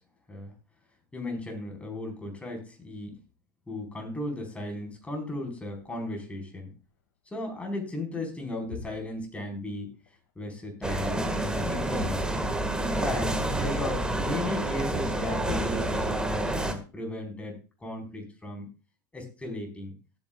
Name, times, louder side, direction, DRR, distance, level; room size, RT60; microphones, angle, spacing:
voice 1, 1.1-3.2 3.7-6.7 7.3-9.9 10.4-18.7 19.1-19.9, left 1 dB, 10° left, 1 dB, 4.6 m, -36 dB
sound 1, 5.7-7.4 7.7-8.0 8.5-10.3 10.6-11.3 11.5-11.6 11.9-12.9 13.2-13.3 14.0-14.1 15.1-15.2 15.4-16.4, left 6 dB, 75° left, 2.3 m, -47 dB
sound 2, 10.8-16.7, right 1 dB, 5° right, 1.8 m, -29 dB
17.5 x 9.0 x 2.4 m, 0.32 s
supercardioid pair, 115°, 11 cm